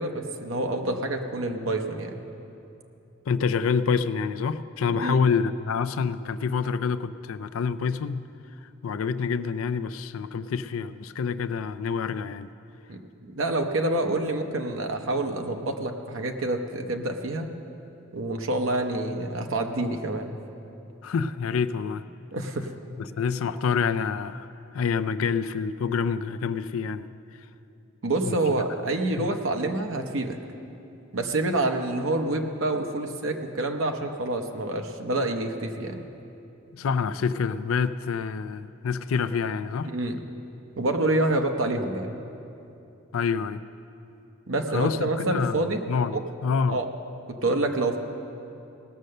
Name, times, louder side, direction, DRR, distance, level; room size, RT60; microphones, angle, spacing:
voice 1, 0.0-2.1 4.9-5.2 12.9-17.5 18.1-20.4 22.3-22.7 28.0-30.4 31.1-36.0 39.8-40.2 40.8-42.2 44.5-45.8 46.1-46.2 46.7-46.9 47.3-48.0, right 2 dB, 70° right, 4 dB, 0.8 m, -27 dB
voice 2, 3.3-8.3 8.8-12.5 21.0-22.0 23.0-27.1 28.2-28.4 29.2-29.3 36.7-39.9 43.1-43.6 44.7-46.8, left 5 dB, 80° left, 12 dB, 0.4 m, -27 dB
18.0 x 6.5 x 6.5 m, 2.8 s
head